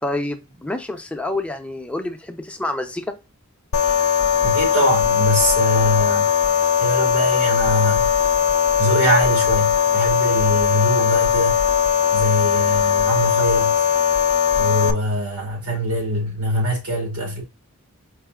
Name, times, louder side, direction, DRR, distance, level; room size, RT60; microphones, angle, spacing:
voice 1, 0.0-3.1, left 2 dB, 5° left, 0.6 m, -28 dB
sound 1, 3.7-14.9, left 8 dB, 65° left, 0.5 m, -19 dB
voice 2, 4.4-6.3 6.8-8.1 8.8-11.6 12.1-13.8 14.5-17.4, equal, 90° right, 2.4 m, -22 dB
4.7 x 2.6 x 3.6 m
head